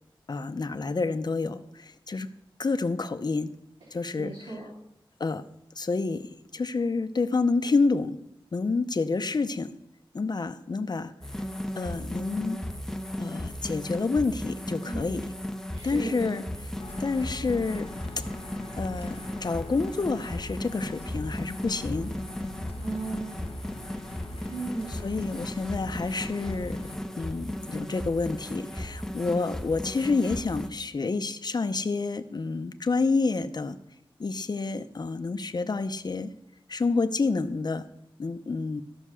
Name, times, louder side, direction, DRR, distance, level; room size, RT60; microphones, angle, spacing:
voice 1, 0.3-2.3 2.6-3.5 3.9-4.3 5.2-5.5 5.8-8.2 8.5-9.7 10.1-11.1 11.8-12.6 13.2-15.3 15.8-16.7 17.0-17.9 18.2-18.3 18.8-22.1 24.9-26.8 27.2-33.8 34.2-36.3 36.7-37.9 38.2-38.8, left 4 dB, 50° left, 9 dB, 0.7 m, -28 dB
voice 2, 4.2-4.7 14.8-15.1 15.7-16.3 22.8-23.3 24.5-24.9, right 2 dB, 85° right, -6 dB, 3.6 m, -35 dB
sound 1, 11.2-30.7, left 1 dB, 5° left, 0.8 m, -36 dB
sound 2, 16.8-27.0, left 3 dB, 90° left, 1.3 m, -44 dB
14.0 x 5.5 x 6.2 m, 0.80 s
wide cardioid pair, 100°, 9 cm